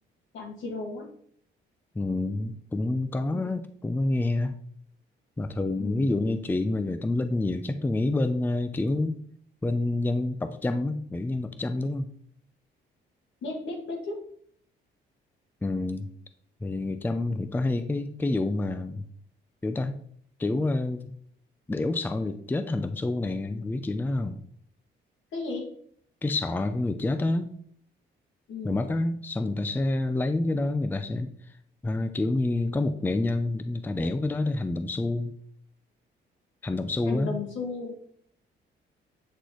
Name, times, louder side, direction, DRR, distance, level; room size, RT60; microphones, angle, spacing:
voice 1, 0.3-1.1 3.3-3.6 5.8-6.1 13.4-14.2 25.3-25.7 28.5-28.8 37.1-38.0, left 3 dB, 80° left, 0 dB, 1.9 m, -34 dB
voice 2, 2.0-4.6 5.4-9.2 9.6-12.1 15.6-16.1 16.6-19.1 19.6-20.0 20.4-21.0 21.7-24.4 26.2-27.5 28.6-31.3 31.8-35.3 36.6-37.3, left 2 dB, 10° left, 9 dB, 0.4 m, -28 dB
8.4 x 3.9 x 3.1 m, 0.62 s
cardioid pair, 90°, 20 cm